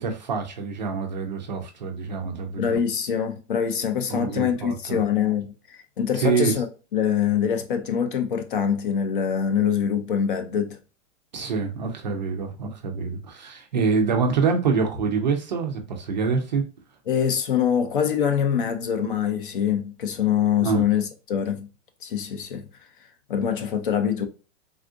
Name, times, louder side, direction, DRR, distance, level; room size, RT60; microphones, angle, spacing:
voice 1, 0.0-2.7 4.1-5.0 6.2-6.5 11.3-16.6 20.6-20.8, right 5 dB, 40° right, 0.4 m, -26 dB
voice 2, 2.6-6.7 6.9-10.8 17.1-21.7 22.0-22.7 23.3-24.3, left 8 dB, 45° left, 0.5 m, -24 dB
3.5 x 2.4 x 2.4 m
supercardioid pair, 175°, 37 cm